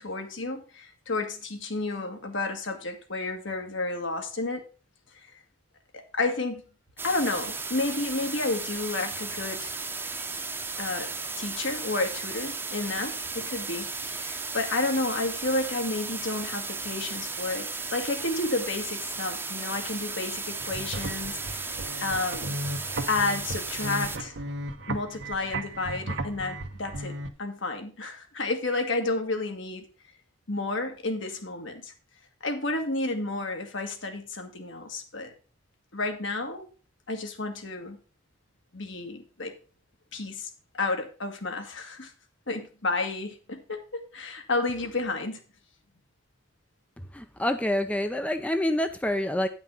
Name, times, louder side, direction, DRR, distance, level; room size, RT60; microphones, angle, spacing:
voice 1, 0.0-4.7 5.9-6.6 7.0-9.7 10.8-22.6 23.1-24.4 24.9-29.9 30.5-31.9 32.4-35.3 35.9-36.7 37.1-38.0 38.7-39.5 40.1-40.5 40.7-42.1 42.5-45.4, left 2 dB, 70° left, 4 dB, 2.0 m, -31 dB
sound 1, 7.0-24.2, right 4 dB, 10° right, 0.9 m, -35 dB
sound 2, 20.5-27.3, right 1 dB, 65° right, 1.1 m, -35 dB
voice 2, 47.1-49.5, left 1 dB, 5° left, 8 dB, 0.6 m, -27 dB
10.0 x 6.0 x 5.5 m, 0.37 s
head